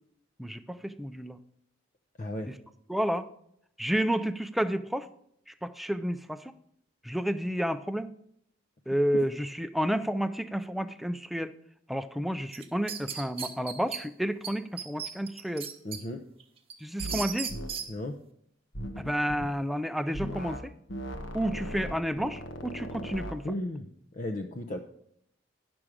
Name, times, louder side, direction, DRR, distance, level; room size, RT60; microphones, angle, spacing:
voice 1, 0.4-1.4 2.5-2.6 2.9-3.3 3.8-5.1 5.5-6.5 7.0-8.1 8.9-11.5 11.9-15.7 16.8-17.5 19.0-20.7 21.3-23.5, equal, ahead, 11 dB, 0.4 m, -31 dB
voice 2, 2.2-2.5 15.8-16.2 17.9-18.2 21.5-21.6 23.4-24.8, left 1 dB, 40° left, 4 dB, 0.6 m, -35 dB
sound 1, 12.5-14.0 14.4-14.5 14.8-16.0 16.4-17.9, right 8 dB, 30° right, 1.0 m, -36 dB
sound 2, 17.0-17.2 17.5-17.7 18.7-19.5 20.1-20.6 20.9-23.4, equal, 75° left, 1.3 m, -38 dB
11.0 x 6.1 x 4.9 m, 0.71 s
head